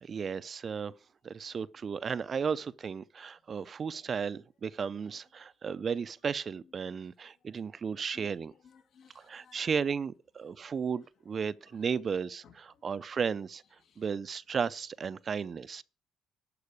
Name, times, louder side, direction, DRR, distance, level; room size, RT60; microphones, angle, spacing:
voice 1, 0.0-0.9 1.2-8.5 9.2-13.6 14.0-15.8, right 6 dB, 45° right, 0.5 m, -34 dB
voice 2, 8.1-9.7 12.4-12.8 13.8-14.0, left 6 dB, 65° left, 1.5 m, -60 dB
12.0 x 4.7 x 8.3 m
cardioid pair, 85°, 0 cm